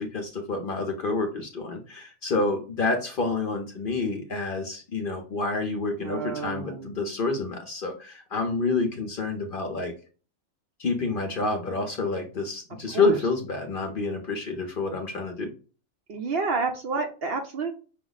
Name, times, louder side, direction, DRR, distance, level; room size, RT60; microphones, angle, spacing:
voice 1, 0.0-9.9 10.8-15.5, left 3 dB, 50° left, 3 dB, 0.7 m, -28 dB
voice 2, 6.0-6.9 12.9-13.2 16.1-17.7, right 4 dB, 55° right, 4 dB, 0.8 m, -29 dB
5.9 x 2.0 x 3.9 m, 0.36 s
omnidirectional pair, 1.4 m